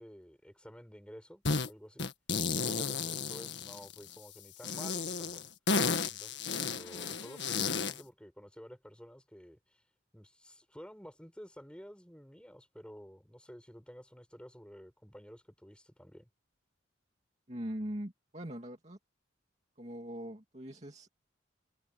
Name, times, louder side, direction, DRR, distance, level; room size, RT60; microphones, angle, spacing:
voice 1, 0.0-2.1 2.5-5.5 6.0-9.8 10.1-16.3, equal, 5° left, 7.0 m, -52 dB
sound 1, 1.5-1.7 2.0-4.1 4.6-8.0, left 4 dB, 60° left, 1.9 m, -33 dB
voice 2, 17.5-19.0 19.8-21.1, equal, 35° right, 2.4 m, -41 dB
head